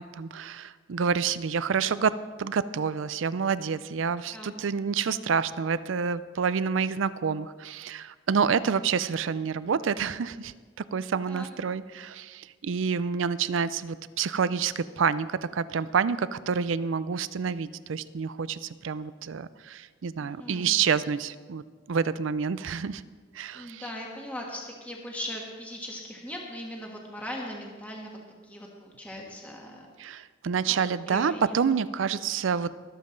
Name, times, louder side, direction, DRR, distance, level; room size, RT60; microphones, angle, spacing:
voice 1, 0.0-10.5 10.9-23.0 23.3-23.9 30.0-32.7, right 6 dB, 70° right, 16 dB, 0.4 m, -28 dB
voice 2, 4.3-5.0 8.5-8.6 11.3-11.5 20.2-20.7 23.5-28.1 28.4-29.9 30.7-31.8, equal, 5° left, -2 dB, 1.3 m, -40 dB
21.5 x 7.4 x 3.9 m, 1.5 s
head